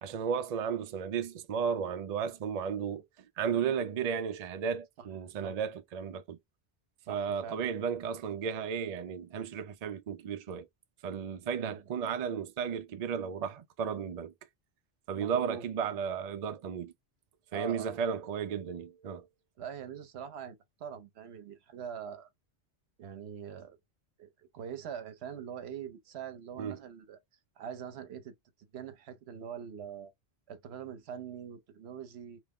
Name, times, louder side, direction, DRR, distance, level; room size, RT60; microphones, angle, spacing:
voice 1, 0.0-3.0 3.4-6.4 7.1-10.7 11.0-14.3 15.1-16.9 17.5-19.3 26.6-26.8, right 7 dB, 55° right, 0.4 m, -34 dB
voice 2, 7.1-7.7 11.6-11.8 15.1-15.7 17.5-18.0 19.6-22.3 23.0-23.8 24.2-27.2 27.6-28.3 28.7-30.1 30.5-32.4, right 8 dB, 75° right, 0.9 m, -43 dB
2.9 x 2.0 x 3.5 m
omnidirectional pair, 1.1 m